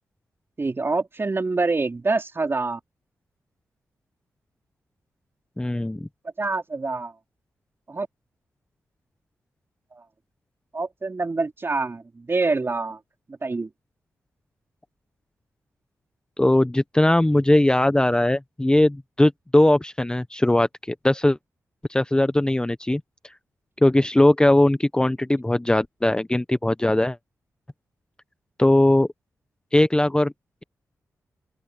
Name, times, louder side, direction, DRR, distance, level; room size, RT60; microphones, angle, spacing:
voice 1, 0.6-2.8 6.4-7.1 7.9-8.1 9.9-10.0 10.7-13.0 13.3-13.7, right 3 dB, 40° right, 4.2 m, -26 dB
voice 2, 5.6-6.1 16.4-21.4 21.9-23.0 23.8-27.2 28.6-29.1 29.7-30.3, left 1 dB, 15° left, 0.9 m, -19 dB
open air
cardioid pair, 55°, 6 cm